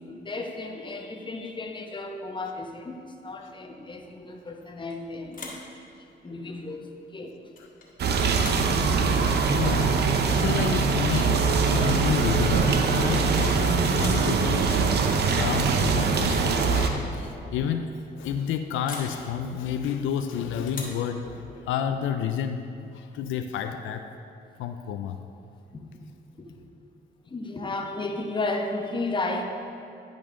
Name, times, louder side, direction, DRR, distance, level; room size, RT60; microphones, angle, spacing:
voice 1, 0.0-5.6 5.9-7.4 25.7-25.8 26.4-26.6 27.3-29.4, left 2 dB, 25° left, 3 dB, 0.9 m, -34 dB
sound 1, 4.6-5.0 5.3-5.7 7.5-7.9 8.3-8.7 10.6-10.7 11.1-11.4 12.9-14.3 15.8-16.1 16.4-16.8 17.0-17.1 18.8-19.2 20.7-21.1, left 3 dB, 45° left, 1.7 m, -42 dB
sound 2, 8.0-16.9, right 5 dB, 55° right, 0.7 m, -23 dB
voice 2, 9.5-10.0 10.3-14.8 15.4-24.1 24.6-25.2, left 8 dB, 85° left, 7 dB, 0.4 m, -30 dB
sound 3, 14.7-14.9 15.3-15.4 16.1-16.2 16.9-17.0 17.4-17.6 18.3-18.4 19.1-19.2 19.6-19.8 20.4-20.6 21.3-21.4, left 5 dB, 65° left, 1.1 m, -45 dB
10.5 x 5.2 x 3.7 m, 2.7 s
cardioid pair, 90°, 20 cm